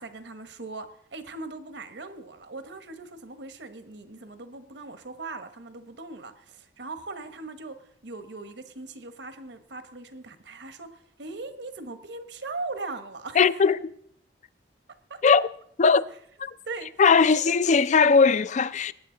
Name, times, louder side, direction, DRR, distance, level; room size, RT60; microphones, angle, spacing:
voice 1, 0.0-13.5 15.1-15.2 16.7-17.0 17.3-17.5, right 3 dB, 70° right, 1.1 m, -39 dB
voice 2, 13.4-13.9 15.2-15.5 15.8-16.0 16.4-16.5 17.0-18.9, left 5 dB, 40° left, 0.4 m, -19 dB
20.5 x 9.1 x 3.8 m
head